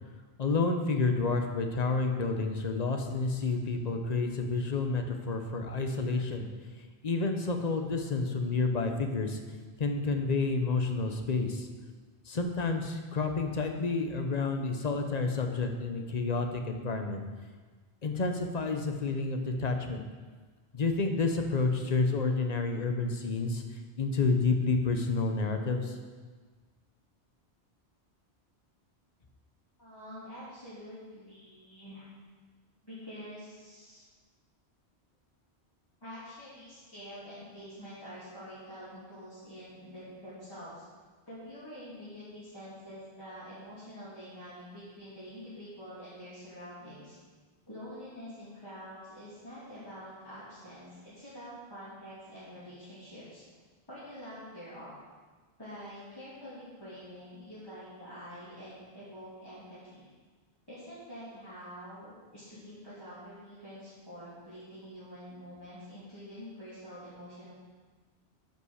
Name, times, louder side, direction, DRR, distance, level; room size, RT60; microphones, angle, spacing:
voice 1, 0.4-6.5 7.0-9.4 9.8-11.7 12.3-17.2 18.0-20.0 20.7-26.0, left 3 dB, 40° left, 5 dB, 1.0 m, -30 dB
voice 2, 29.8-32.1 32.8-34.0 36.0-40.8 41.3-47.2 47.7-53.4 53.9-54.9 55.6-60.1 60.7-67.5, equal, 20° left, -13 dB, 3.2 m, -46 dB
10.5 x 5.6 x 6.5 m, 1.4 s
omnidirectional pair, 1.1 m